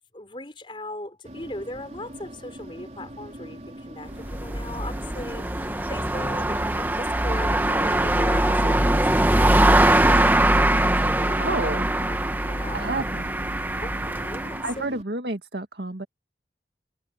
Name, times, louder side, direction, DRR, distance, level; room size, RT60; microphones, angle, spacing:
voice 1, 0.1-11.5 12.0-13.0 13.8-15.0, left 1 dB, 30° left, 4.8 m, -38 dB
sound 1, 1.2-15.0, right 1 dB, 40° right, 3.8 m, -42 dB
sound 2, 4.1-14.7, right 1 dB, 10° right, 1.2 m, -22 dB
voice 2, 11.4-11.9 12.7-13.3 14.6-16.1, right 2 dB, 70° right, 2.0 m, -30 dB
head